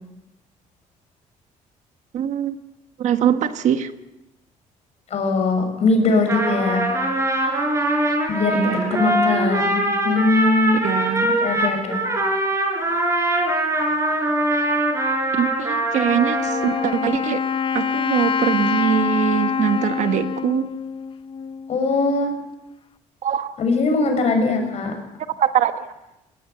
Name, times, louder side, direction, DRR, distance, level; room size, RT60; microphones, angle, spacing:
voice 1, 2.1-2.6 3.0-3.9 8.5-9.0 10.7-11.4 15.3-17.4 17.7-20.7 23.2-23.5 25.4-25.9, right 9 dB, 65° right, 9 dB, 1.4 m, -22 dB
voice 2, 5.1-6.9 8.3-8.6 8.9-10.8 11.4-12.0 21.7-22.3 23.6-24.9, left 3 dB, 55° left, 5 dB, 6.3 m, -20 dB
Trumpet, 6.1-17.0, right 1 dB, 20° right, 6.4 m, -22 dB
Wind instrument woodwind instrument, 16.0-21.8, left 6 dB, 40° left, 0.9 m, -25 dB
20.0 x 19.0 x 6.9 m, 0.94 s
cardioid pair, 110°, 13 cm